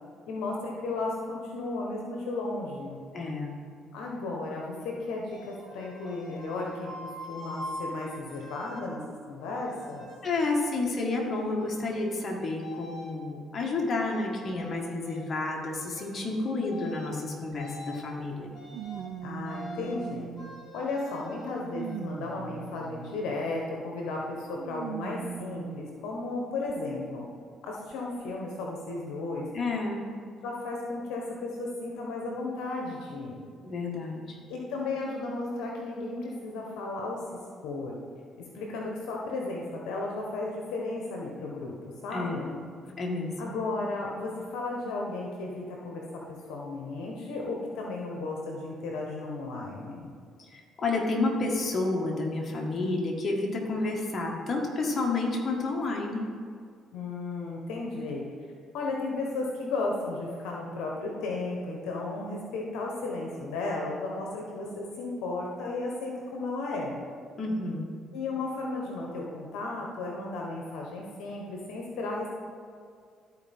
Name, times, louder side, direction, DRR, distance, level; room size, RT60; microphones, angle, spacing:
voice 1, 0.3-3.0 3.9-6.9 7.3-9.0 9.3-10.1 19.2-20.3 20.7-27.2 27.6-29.5 30.4-33.4 34.5-37.2 37.6-38.0 38.5-41.7 42.0-42.5 43.4-46.0 46.5-50.1 56.9-58.2 58.7-66.9 68.1-72.3, left 2 dB, 80° left, -1 dB, 1.1 m, -34 dB
voice 2, 3.1-3.5 10.2-18.5 29.5-30.0 33.6-34.4 42.1-42.6 43.0-43.5 50.4-56.3 67.3-67.9, left 2 dB, 45° left, 0 dB, 1.7 m, -30 dB
sound 1, 5.3-8.8 9.4-10.2 10.5-11.2 11.6-12.2 12.6-13.1 13.6-14.8 15.0-15.3 15.6-16.2 16.6-17.2 17.5-18.1 18.5-19.1 19.4-20.0 20.4-22.0, left 1 dB, 60° left, 2.0 m, -44 dB
sound 2, 17.5-17.6 18.7-20.8 21.3-23.4 24.6-26.0 26.7-26.8 27.9-28.0, right 10 dB, 75° right, 0.3 m, -40 dB
13.0 x 4.7 x 3.6 m, 2.2 s
supercardioid pair, 70°, 0 cm